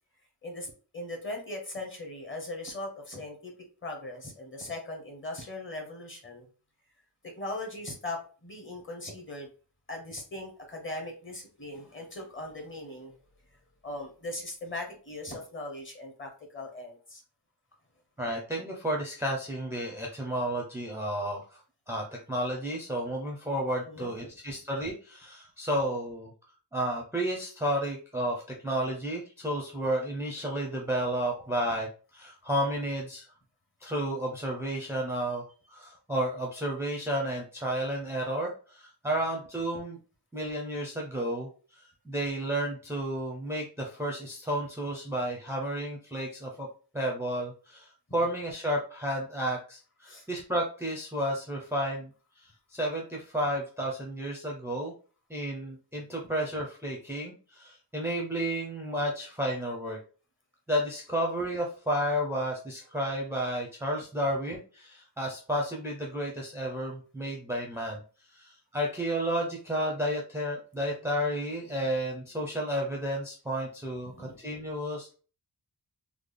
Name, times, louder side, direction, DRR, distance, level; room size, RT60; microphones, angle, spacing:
voice 1, 0.4-3.5 3.8-6.5 7.2-9.5 9.9-13.1 13.8-17.2 23.9-24.1 50.1-50.3 74.0-74.4, left 2 dB, 30° left, 2 dB, 0.9 m, -39 dB
voice 2, 18.2-21.6 21.9-26.3 26.7-33.3 33.8-40.0 40.3-41.5 42.1-46.7 46.9-52.1 52.7-54.9 55.3-60.0 60.7-68.0 68.3-75.1, equal, 5° right, -2 dB, 0.5 m, -32 dB
3.6 x 2.0 x 3.2 m, 0.37 s
wide cardioid pair, 170°, 39 cm